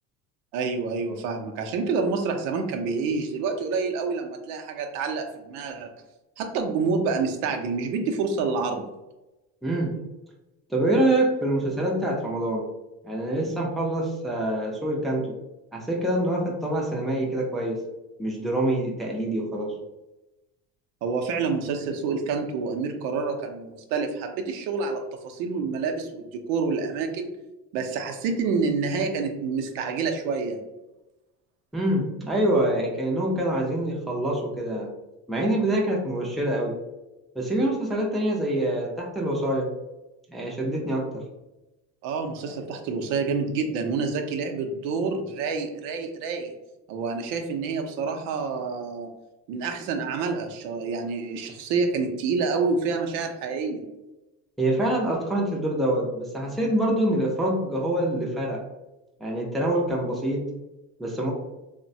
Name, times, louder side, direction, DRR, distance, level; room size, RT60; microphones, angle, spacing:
voice 1, 0.5-5.9 6.4-8.8 21.0-27.3 27.7-30.6 42.0-46.5 46.9-49.1 49.5-53.8, right 4 dB, 80° right, 4 dB, 0.6 m, -28 dB
voice 2, 9.6-9.9 10.7-12.7 13.0-15.4 15.7-17.8 18.2-19.7 31.7-34.9 35.3-36.8 37.4-39.7 40.3-41.2 54.6-58.6 59.2-60.4 61.0-61.3, right 1 dB, ahead, -3 dB, 0.4 m, -25 dB
3.0 x 2.1 x 2.6 m, 1.0 s
cardioid pair, 120°, 32 cm